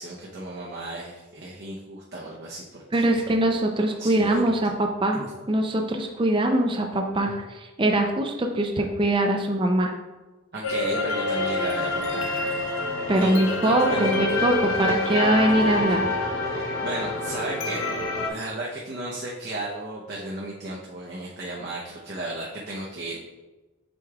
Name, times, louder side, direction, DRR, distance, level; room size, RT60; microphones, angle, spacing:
voice 1, 0.0-3.2 4.0-4.5 5.1-5.3 7.3-7.4 10.5-12.3 13.2-15.2 15.5-15.6 16.5-17.8 18.3-23.2, right 1 dB, 55° right, -4 dB, 0.8 m, -35 dB
voice 2, 2.9-5.2 5.5-9.9 13.1-16.0, right 1 dB, 25° right, 3 dB, 0.5 m, -22 dB
sound 1, 10.6-18.3, left 2 dB, 85° left, 0.9 m, -27 dB
7.9 x 5.2 x 2.3 m, 1.2 s
head